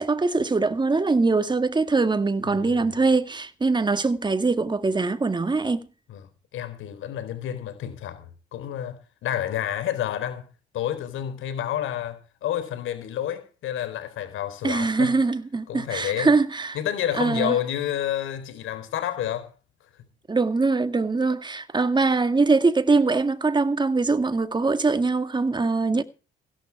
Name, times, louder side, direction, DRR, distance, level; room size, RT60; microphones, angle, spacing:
voice 1, 0.0-5.9 14.6-16.8 17.1-17.6 20.3-26.0, right 3 dB, 20° right, 1.8 m, -22 dB
voice 2, 2.4-3.0 6.1-6.2 6.5-10.5 10.7-15.2 15.7-16.3 16.7-19.5, left 11 dB, 85° left, 4.1 m, -29 dB
16.5 x 11.5 x 4.7 m
cardioid pair, 90°, 20 cm